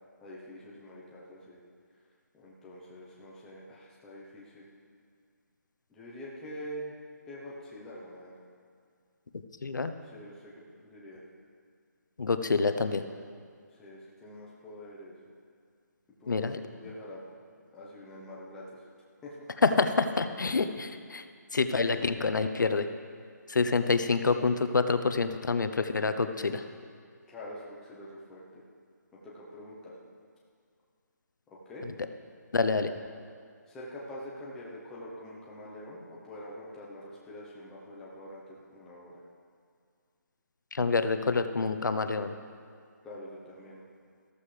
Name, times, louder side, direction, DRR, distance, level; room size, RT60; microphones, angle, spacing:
voice 1, 0.2-1.6 2.3-4.7 5.9-6.9 7.3-8.3 10.0-10.5 10.8-11.2 13.8-15.3 16.2-17.2 17.7-18.8 19.2-19.4 27.3-28.6 29.2-30.0 31.5-31.9 32.6-32.9 33.7-39.1 43.0-43.8, equal, 5° left, -6 dB, 0.8 m, -45 dB
voice 2, 9.6-9.9 12.2-13.0 16.3-16.6 19.6-21.2 21.5-22.9 23.5-26.6 32.5-32.9 40.7-42.3, left 4 dB, 80° left, 9 dB, 0.8 m, -27 dB
14.5 x 13.5 x 3.3 m, 2.2 s
hypercardioid pair, 175°, 10 cm